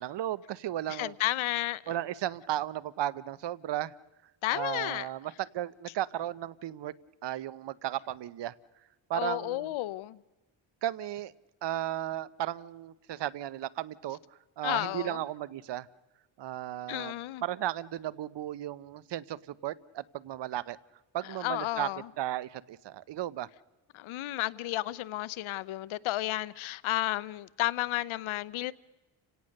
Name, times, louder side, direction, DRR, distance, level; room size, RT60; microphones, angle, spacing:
voice 1, 0.0-1.1 1.9-3.9 4.5-6.9 7.2-8.5 9.1-9.8 10.8-11.3 11.6-14.2 14.6-15.9 16.4-17.1 17.4-20.8 21.1-21.9 22.2-23.5, right 12 dB, 60° right, 0.9 m, -35 dB
voice 2, 0.9-1.8 4.4-5.1 9.1-10.2 14.6-15.2 16.9-17.4 21.3-22.1 23.9-28.7, left 16 dB, 75° left, 0.8 m, -32 dB
30.0 x 17.5 x 6.6 m
cardioid pair, 100°, 48 cm